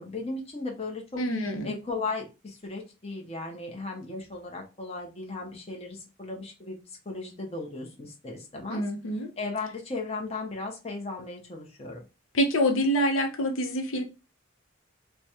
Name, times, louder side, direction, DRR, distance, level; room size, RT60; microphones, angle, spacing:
voice 1, 0.0-1.2 1.6-6.8 7.1-8.8 9.4-12.0, left 3 dB, 30° left, 0.8 m, -36 dB
voice 2, 1.2-1.8 8.7-9.3 12.3-14.0, equal, 80° left, 0.7 m, -26 dB
3.2 x 2.2 x 4.2 m
head